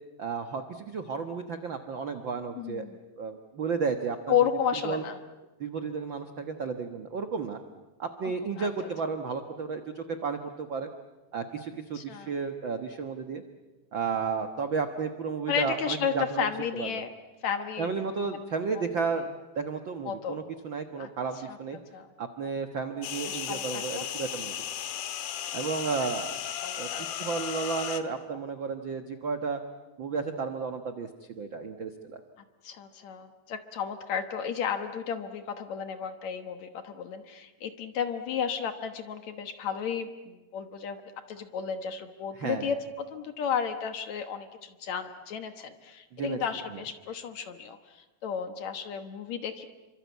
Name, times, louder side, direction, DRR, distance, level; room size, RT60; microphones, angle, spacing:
voice 1, 0.2-2.8 3.2-4.3 4.8-5.0 5.6-7.6 8.0-10.9 11.3-13.4 13.9-16.4 16.8-16.9 17.8-21.8 22.2-24.5 25.5-26.3 26.8-29.6 30.0-32.2 42.3-42.7 46.1-46.4 46.7-46.8, right 5 dB, 60° right, 7 dB, 1.2 m, -33 dB
voice 2, 2.6-3.0 4.3-5.2 8.6-8.7 11.9-12.3 15.5-17.1 17.4-17.9 18.3-18.4 18.8-18.9 20.1-20.4 21.0-21.1 21.5-21.6 21.9-22.1 23.3-24.1 26.6-27.1 32.6-41.0 41.3-49.7, left 7 dB, 60° left, 8 dB, 2.3 m, -33 dB
sound 1, 23.0-28.0, left 10 dB, 85° left, 3.1 m, -35 dB
28.5 x 25.0 x 8.3 m, 1.1 s
omnidirectional pair, 4.1 m